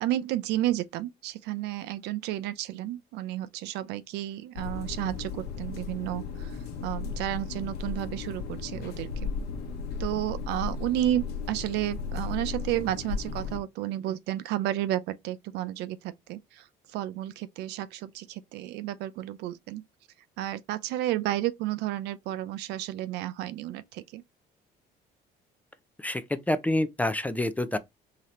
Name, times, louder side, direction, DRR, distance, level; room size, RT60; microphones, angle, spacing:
voice 1, 0.0-9.3 10.0-16.7 16.9-19.8 20.4-24.2, right 13 dB, 85° right, 0.5 m, -32 dB
sound 1, 4.6-13.6, left 5 dB, 75° left, 0.9 m, -35 dB
voice 2, 26.5-27.8, left 1 dB, 10° left, 0.4 m, -27 dB
3.9 x 2.8 x 3.0 m
cardioid pair, 110°, 17 cm